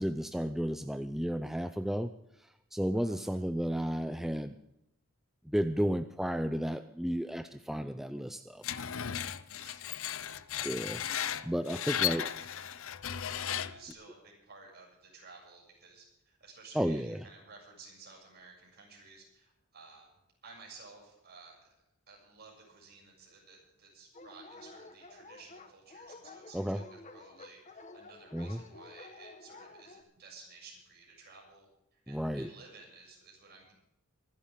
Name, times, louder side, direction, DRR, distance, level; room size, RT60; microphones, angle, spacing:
voice 1, 0.0-2.1 2.7-4.5 5.4-8.6 10.6-12.3 16.8-17.2 26.5-26.8 28.3-28.6 32.1-32.5, equal, ahead, 9 dB, 0.5 m, -33 dB
voice 2, 2.9-3.4 9.4-10.8 11.4-12.5 13.5-21.7 22.1-33.7, right 4 dB, 50° right, -1 dB, 7.4 m, -55 dB
Screech, 8.6-13.9, left 10 dB, 65° left, 0.7 m, -35 dB
Dog, 24.1-30.0, left 3 dB, 35° left, 1.4 m, -51 dB
25.0 x 12.0 x 3.7 m, 0.82 s
head